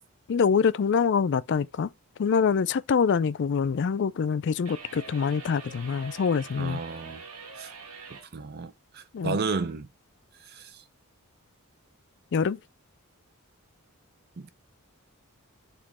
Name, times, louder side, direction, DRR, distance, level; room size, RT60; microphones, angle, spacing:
voice 1, 0.3-1.9 2.2-6.8 9.1-9.4 12.3-12.6, left 6 dB, 55° left, 0.4 m, -25 dB
sound 1, 4.6-8.3, right 5 dB, 80° right, 1.3 m, -44 dB
voice 2, 6.6-7.2 7.5-7.7 8.1-9.9 10.5-10.8 14.4-14.5, right 4 dB, 45° right, 0.5 m, -33 dB
7.3 x 3.1 x 4.2 m
head